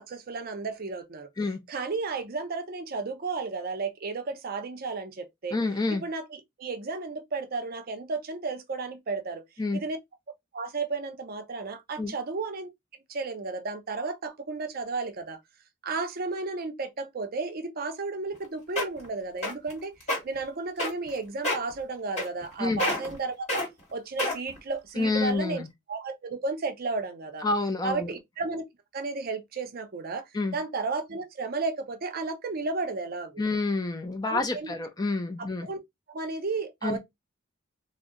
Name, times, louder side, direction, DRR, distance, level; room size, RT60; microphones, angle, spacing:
voice 1, 0.0-1.3 1.7-5.6 6.0-6.2 6.6-9.4 9.7-10.0 10.5-12.7 13.1-15.4 15.8-19.9 20.2-23.6 23.9-25.6 25.9-27.5 27.8-28.6 28.9-30.2 30.5-33.4 34.2-34.8 35.6-35.8 36.1-37.0, right 3 dB, 45° right, 0.5 m, -33 dB
voice 2, 5.5-6.0 9.6-9.8 12.0-12.1 22.6-22.8 25.0-25.7 27.4-28.1 30.3-30.6 33.4-35.7 36.8-37.0, left 3 dB, 20° left, 0.4 m, -28 dB
sound 1, 18.3-18.4 18.8-19.1 19.4-19.7 20.0-20.2 20.8-21.1 21.4-21.7 22.2-22.5 22.8-23.2 23.5-23.7 24.2-24.6 25.2-25.3, left 1 dB, 35° left, 1.6 m, -28 dB
2.6 x 2.0 x 3.6 m
head